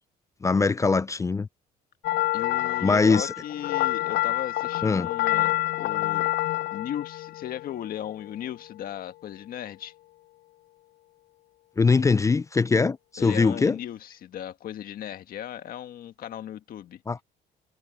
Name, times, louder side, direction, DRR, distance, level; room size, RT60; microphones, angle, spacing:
voice 1, 0.4-1.5 2.8-3.3 4.8-5.1 11.8-13.8 17.1-17.2, left 4 dB, 20° left, 0.4 m, -22 dB
sound 1, 2.0-8.3, left 17 dB, 80° left, 0.7 m, -28 dB
voice 2, 2.3-6.3 6.7-9.9 13.2-17.0, left 10 dB, 60° left, 1.7 m, -36 dB
cardioid pair, 110°, 17 cm